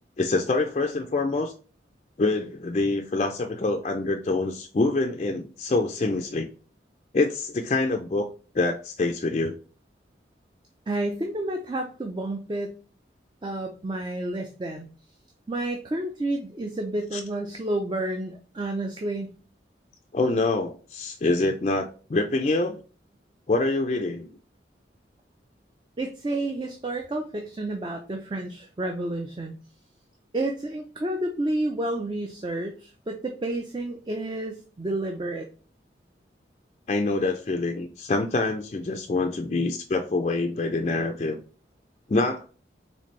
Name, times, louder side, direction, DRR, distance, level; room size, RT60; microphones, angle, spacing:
voice 1, 0.2-1.5 2.2-6.5 7.1-8.3 8.5-9.6 17.1-17.2 20.1-22.8 23.5-24.3 36.9-41.4 42.1-42.5, left 2 dB, 35° left, 3 dB, 0.4 m, -25 dB
voice 2, 10.9-12.8 13.4-14.9 15.5-19.3 26.0-29.5 30.3-35.5, right 1 dB, 25° right, 3 dB, 0.4 m, -30 dB
4.1 x 3.5 x 3.1 m, 0.37 s
head